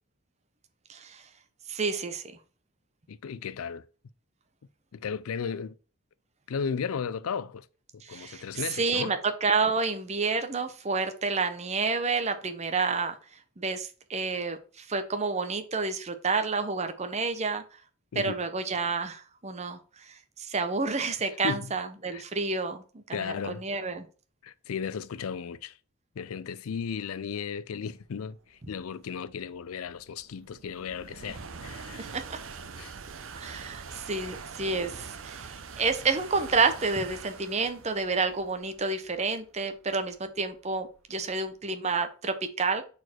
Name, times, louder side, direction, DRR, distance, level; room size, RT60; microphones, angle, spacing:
voice 1, 0.9-1.2 1.7-2.4 8.0-13.2 13.6-17.6 18.1-24.1 32.0-32.4 33.3-42.8, right 4 dB, 30° right, 0.8 m, -29 dB
voice 2, 3.1-3.8 4.9-5.7 6.5-7.7 8.1-9.1 18.1-18.4 21.4-21.7 22.1-22.2 23.1-23.6 24.4-25.8 26.2-32.1 32.8-32.9, left 6 dB, 85° left, 0.4 m, -35 dB
sound 1, 28.2-41.5, right 5 dB, 65° right, 0.7 m, -44 dB
6.4 x 4.3 x 4.4 m
head